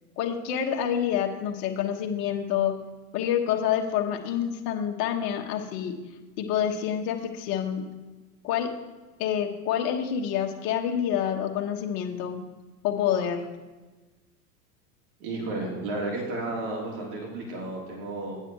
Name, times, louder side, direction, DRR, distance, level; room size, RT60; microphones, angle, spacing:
voice 1, 0.2-2.7 3.1-6.0 6.4-7.8 8.4-8.7 9.2-12.4 12.8-13.5, left 9 dB, 60° left, 2 dB, 1.3 m, -27 dB
voice 2, 15.2-18.4, right 2 dB, 65° right, -2 dB, 3.1 m, -32 dB
9.1 x 7.8 x 4.6 m, 1.2 s
hypercardioid pair, 90°, 47 cm